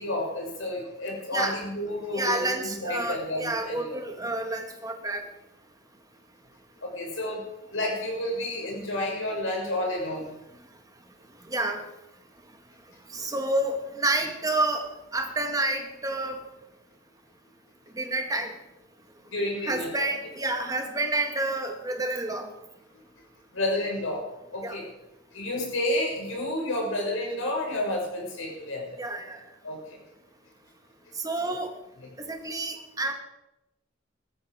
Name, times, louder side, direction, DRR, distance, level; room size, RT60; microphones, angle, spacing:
voice 1, 0.0-4.0 6.8-7.4 7.7-10.2 19.3-19.9 23.5-24.2 24.5-24.9 25.3-29.0 29.6-30.0 31.4-31.6, left 1 dB, 70° left, -1 dB, 6.6 m, -30 dB
voice 2, 2.1-5.2 11.4-11.8 13.1-16.4 17.9-18.5 19.6-22.5 24.6-24.8 29.0-29.4 31.2-31.7 32.2-33.1, right 2 dB, 20° right, 4 dB, 2.0 m, -29 dB
16.5 x 13.5 x 5.2 m, 0.92 s
head